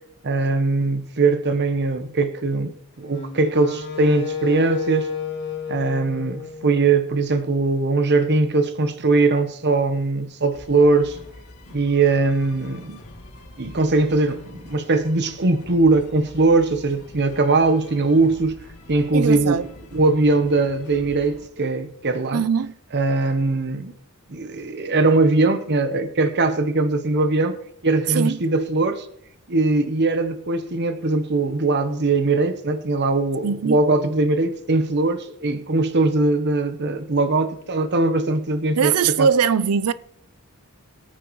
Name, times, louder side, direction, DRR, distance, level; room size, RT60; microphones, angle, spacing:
voice 1, 0.2-5.1 5.7-11.2 11.7-13.0 13.6-18.6 18.9-22.4 22.9-23.9 24.3-27.5 27.8-29.1 29.5-39.3, right 3 dB, 50° right, 0.9 m, -21 dB
Wind instrument woodwind instrument, 3.1-7.3, left 6 dB, 50° left, 2.0 m, -31 dB
sound 1, 10.5-21.5, left 2 dB, 80° left, 2.0 m, -44 dB
voice 2, 19.1-19.7 22.3-22.7 28.1-28.4 33.4-33.8 38.8-39.9, right 6 dB, 90° right, 0.5 m, -21 dB
22.0 x 9.1 x 3.1 m
head